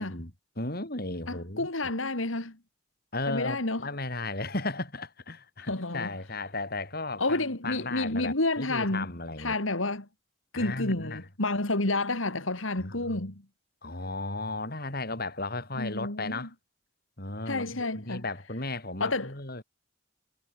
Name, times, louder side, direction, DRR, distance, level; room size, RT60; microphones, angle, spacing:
voice 1, 0.0-1.7 3.1-9.6 10.5-11.2 12.8-13.2 13.8-16.5 17.2-19.6, left 2 dB, 50° left, 6.1 m, -35 dB
voice 2, 1.3-2.6 3.3-3.8 5.7-6.1 7.2-9.1 9.4-10.1 10.5-13.4 15.8-16.5 17.5-18.2 19.0-19.3, left 2 dB, 80° left, 3.2 m, -30 dB
head